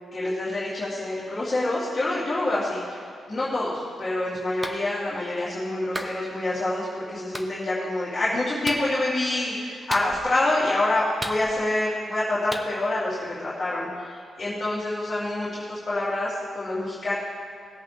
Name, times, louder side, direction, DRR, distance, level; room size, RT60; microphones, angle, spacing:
voice 1, 0.1-17.1, left 2 dB, 25° left, -9 dB, 2.6 m, -27 dB
Clapping, 4.6-4.8 6.0-6.2 7.3-7.5 8.6-8.9 9.9-10.4 11.2-11.8 12.5-12.7, equal, 5° right, 0.8 m, -33 dB
19.0 x 8.2 x 3.3 m, 2.3 s
wide cardioid pair, 145°, 0 cm